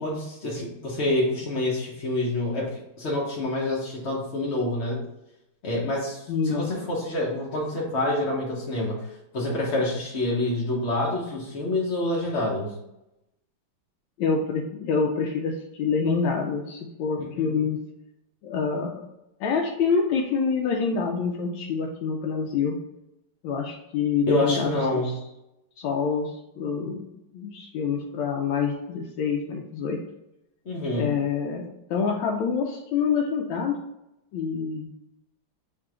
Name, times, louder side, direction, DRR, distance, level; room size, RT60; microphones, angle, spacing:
voice 1, 0.0-5.0 5.6-12.7 17.2-17.6 24.3-25.2 30.7-31.2, left 1 dB, 55° left, -4 dB, 0.7 m, -27 dB
voice 2, 6.3-6.7 14.2-17.8 18.4-19.0 19.4-22.8 23.4-25.1 25.8-27.1 27.3-30.0 30.9-33.8 34.3-34.9, left 5 dB, 85° left, 0 dB, 1.4 m, -26 dB
3.7 x 2.7 x 4.7 m, 0.88 s
omnidirectional pair, 2.1 m